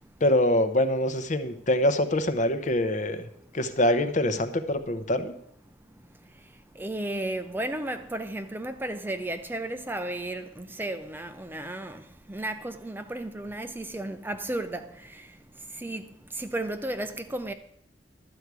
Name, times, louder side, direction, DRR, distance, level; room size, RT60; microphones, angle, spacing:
voice 1, 0.2-3.3 3.5-5.3, left 1 dB, 45° left, 0.8 m, -24 dB
voice 2, 5.9-17.5, right 1 dB, 10° right, 0.5 m, -34 dB
12.0 x 4.8 x 8.1 m
head